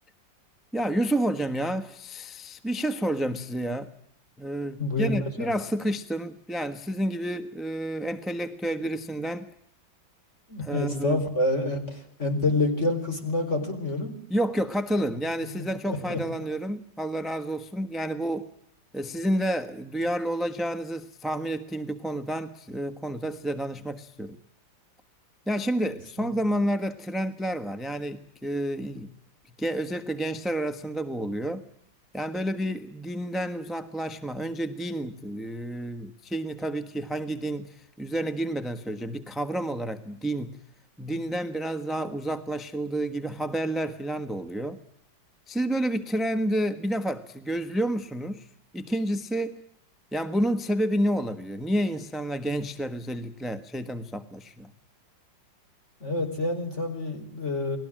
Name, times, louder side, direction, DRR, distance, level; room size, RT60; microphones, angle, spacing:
voice 1, 0.7-3.9 4.4-9.5 10.6-11.2 14.3-18.5 18.9-24.4 25.5-29.1 29.6-31.6 32.1-40.6 41.0-44.8 45.5-48.5 48.7-49.6 50.1-54.7, right 1 dB, ahead, 1.0 m, -30 dB
voice 2, 4.8-5.1 5.4-5.5 10.5-14.1 15.0-15.2 15.4-15.6 15.8-16.2 26.2-26.3 56.0-57.8, left 2 dB, 35° left, 5.1 m, -28 dB
30.0 x 20.5 x 7.6 m
omnidirectional pair, 2.0 m